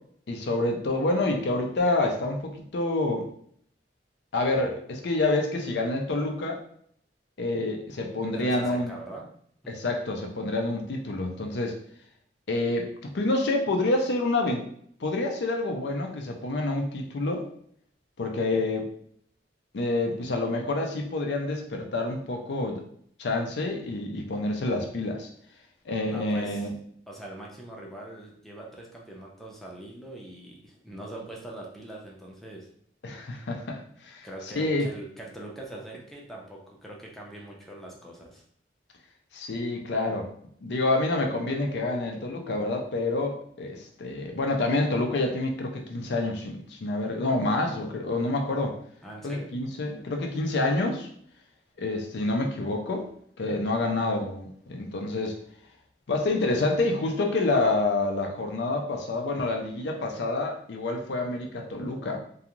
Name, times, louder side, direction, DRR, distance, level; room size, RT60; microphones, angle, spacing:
voice 1, 0.3-3.3 4.3-6.6 7.4-8.9 9.7-11.8 12.5-14.6 15.0-17.4 18.2-18.9 19.7-22.8 23.2-25.3 25.9-26.7 33.0-34.3 34.5-34.9 39.3-40.3 40.6-48.8 49.2-51.1 51.8-53.1 53.4-55.4 56.1-62.2, left 2 dB, 70° left, 2 dB, 0.5 m, -28 dB
voice 2, 8.3-9.3 9.6-9.7 26.1-26.7 27.1-32.7 34.2-38.4 49.0-49.5, right 1 dB, ahead, -2 dB, 0.5 m, -42 dB
2.5 x 2.3 x 2.9 m, 0.64 s
head